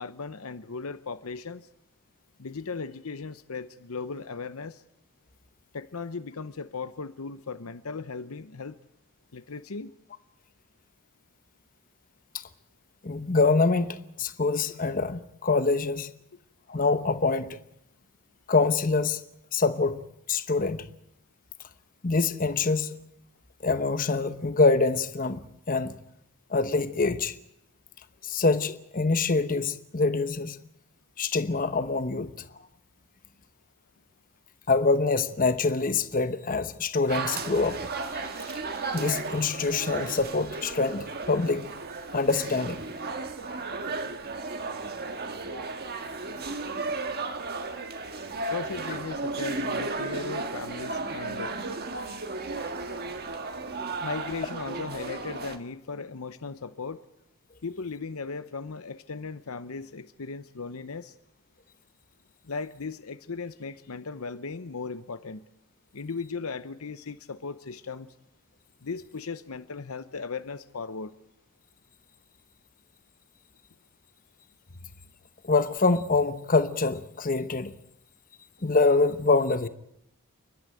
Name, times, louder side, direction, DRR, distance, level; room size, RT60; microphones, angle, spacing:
voice 1, 0.0-1.7 2.4-4.8 5.7-8.8 9.3-9.9 48.4-51.6 54.0-57.0 57.6-61.1 62.4-65.4 65.9-68.1 68.8-71.1, left 4 dB, 70° left, 0.8 m, -37 dB
voice 2, 13.0-16.1 16.7-17.6 18.5-19.2 19.5-20.0 20.3-20.9 22.0-23.0 23.6-26.0 26.5-27.3 28.2-30.6 31.2-32.3 34.7-37.9 38.9-41.7 42.1-42.8 75.4-77.7 78.6-79.7, left 3 dB, 40° left, 1.0 m, -25 dB
sound 1, 37.1-55.6, right 3 dB, 45° right, 1.6 m, -34 dB
29.5 x 12.0 x 9.2 m
head